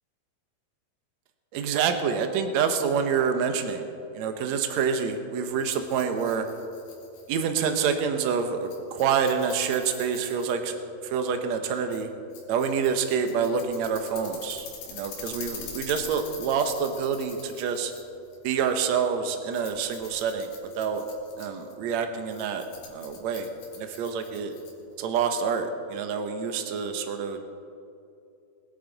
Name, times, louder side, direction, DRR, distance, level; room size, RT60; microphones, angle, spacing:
voice 1, 1.5-3.9 4.1-6.4 7.3-10.7 11.0-12.1 12.5-17.9 18.4-20.5 20.7-21.0 21.4-22.7 22.9-23.5 23.8-24.5 25.0-27.5, right 6 dB, 75° right, 6 dB, 1.6 m, -27 dB
Rattle, 5.5-25.0, left 5 dB, 85° left, 3.8 m, -45 dB
21.0 x 11.0 x 4.0 m, 2.6 s
omnidirectional pair, 4.4 m